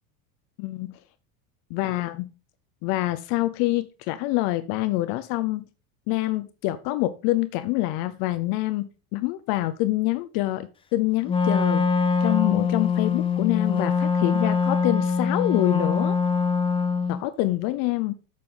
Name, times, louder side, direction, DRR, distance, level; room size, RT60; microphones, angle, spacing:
voice 1, 0.6-1.0 1.7-2.3 2.8-5.7 6.1-11.8 12.2-16.2 17.1-18.1, left 17 dB, 55° left, 0.8 m, -26 dB
Wind instrument woodwind instrument, 11.3-17.2, left 5 dB, 15° left, 0.6 m, -23 dB
8.4 x 6.8 x 3.9 m
supercardioid pair, 120°, 42 cm